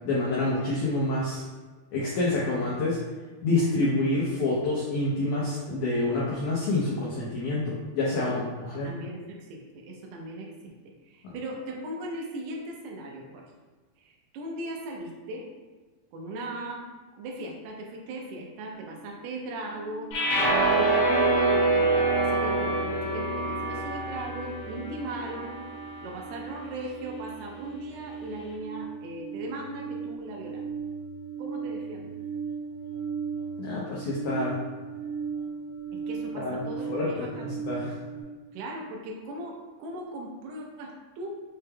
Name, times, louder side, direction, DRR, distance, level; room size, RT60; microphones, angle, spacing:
voice 1, 0.1-1.4 1.9-3.0 3.4-8.4 8.8-8.9 11.2-11.3 33.6-34.6 36.4-36.6 36.9-37.9, left 2 dB, 90° left, -6 dB, 1.8 m, -27 dB
voice 2, 8.2-13.5 14.0-15.5 16.1-16.9 17.2-20.1 20.5-25.6 26.0-30.6 31.4-32.1 35.9-37.5 38.5-41.3, right 1 dB, 85° right, 0 dB, 2.8 m, -38 dB
sound 1, 18.7-21.1 21.4-38.2, right 6 dB, 70° right, 1.9 m, -38 dB
sound 2, 20.1-26.4, right 2 dB, 75° left, 2.3 m, -26 dB
6.5 x 2.2 x 3.4 m, 1.3 s
omnidirectional pair, 4.7 m